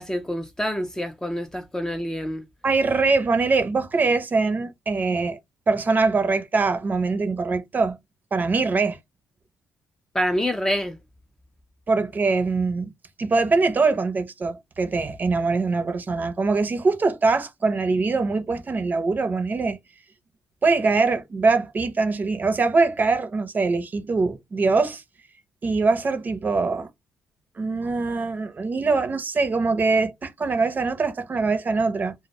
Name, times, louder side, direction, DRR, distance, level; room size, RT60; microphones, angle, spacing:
voice 1, 0.0-2.4 10.1-11.0, equal, 10° left, 0.4 m, -27 dB
voice 2, 2.6-5.4 5.7-8.0 8.3-9.0 11.9-12.9 13.2-19.8 20.6-25.0 25.6-26.9 27.6-32.1, right 3 dB, 35° right, 0.6 m, -23 dB
2.1 x 2.1 x 2.8 m
cardioid pair, 85°, 5 cm